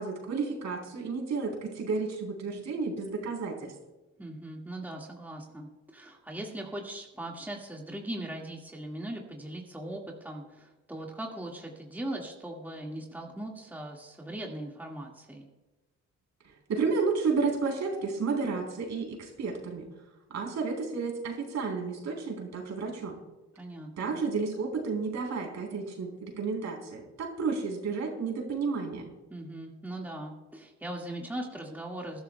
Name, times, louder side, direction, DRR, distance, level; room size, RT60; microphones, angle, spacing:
voice 1, 0.0-3.7 16.7-19.9 20.3-23.2 24.0-29.1, right 4 dB, 65° right, 0 dB, 3.8 m, -31 dB
voice 2, 4.2-15.5 23.6-24.2 29.3-32.2, right 1 dB, 5° right, -1 dB, 1.9 m, -39 dB
21.0 x 12.0 x 2.3 m, 1.1 s
cardioid pair, 90°, 30 cm